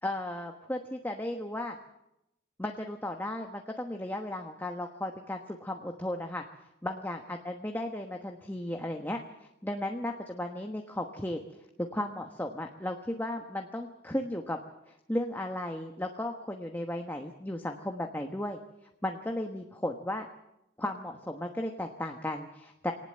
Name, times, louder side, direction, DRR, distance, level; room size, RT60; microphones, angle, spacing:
voice 1, 0.0-1.8 2.6-6.4 6.8-11.4 11.8-14.6 14.9-18.6 19.0-20.3 20.8-22.9, left 1 dB, 10° left, 3 dB, 1.2 m, -35 dB
22.5 x 19.0 x 7.6 m, 0.86 s
head